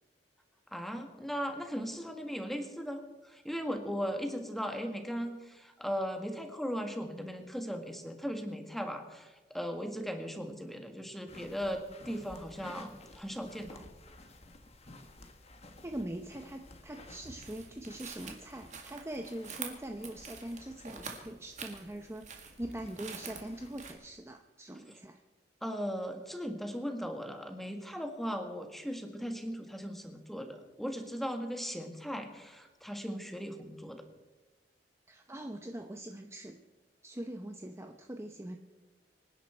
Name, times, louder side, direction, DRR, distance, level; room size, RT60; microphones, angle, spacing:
voice 1, 0.7-13.8 25.6-34.0, equal, ahead, 5 dB, 1.7 m, -38 dB
sound 1, 11.3-24.0, left 2 dB, 35° left, 1.6 m, -54 dB
voice 2, 15.8-25.2 35.1-36.6 37.0-38.6, right 1 dB, 15° right, 5 dB, 0.8 m, -42 dB
sound 2, 17.4-23.9, right 6 dB, 45° right, 2.2 m, -46 dB
25.0 x 10.5 x 4.5 m, 1.2 s
head